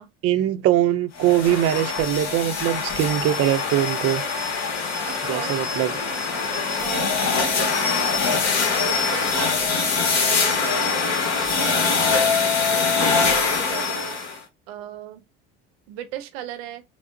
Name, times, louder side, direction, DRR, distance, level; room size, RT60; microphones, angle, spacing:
voice 1, 0.2-4.2 5.3-5.9, right 12 dB, 50° right, 0.5 m, -22 dB
sound 1, 1.2-14.4, left 4 dB, 55° left, 1.1 m, -23 dB
voice 2, 5.0-5.6 6.3-6.4 6.8-7.4 8.6-10.0 10.2-11.2 11.6-12.3 12.7-14.2 14.7-15.2 15.9-16.8, right 12 dB, 85° right, 0.7 m, -36 dB
5.8 x 2.0 x 2.5 m
supercardioid pair, 90°, 31 cm